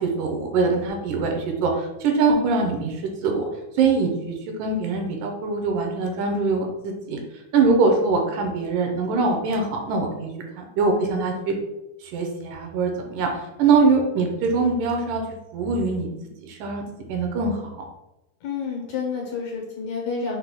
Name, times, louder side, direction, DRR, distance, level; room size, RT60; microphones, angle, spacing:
voice 1, 0.0-3.0 3.2-3.5 3.8-7.2 7.5-10.3 10.6-11.6 12.1-13.3 13.6-15.2 15.5-16.1 16.5-17.7, right 4 dB, 85° right, 2 dB, 2.3 m, -23 dB
voice 2, 18.4-20.4, left 5 dB, 70° left, 0 dB, 1.8 m, -29 dB
5.9 x 2.2 x 3.4 m, 0.93 s
omnidirectional pair, 3.7 m